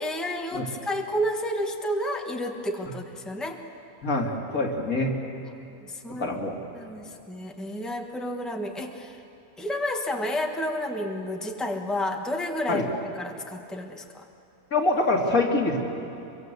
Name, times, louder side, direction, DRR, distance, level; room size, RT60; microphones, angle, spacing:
voice 1, 0.0-3.6 5.8-6.3 6.7-9.2 9.6-12.9 13.2-14.2, equal, ahead, 3 dB, 1.5 m, -30 dB
voice 2, 4.0-5.2 6.1-6.6 12.7-12.9 14.7-15.9, left 2 dB, 75° left, 0 dB, 2.9 m, -25 dB
25.5 x 23.0 x 8.1 m, 2.7 s
omnidirectional pair, 1.5 m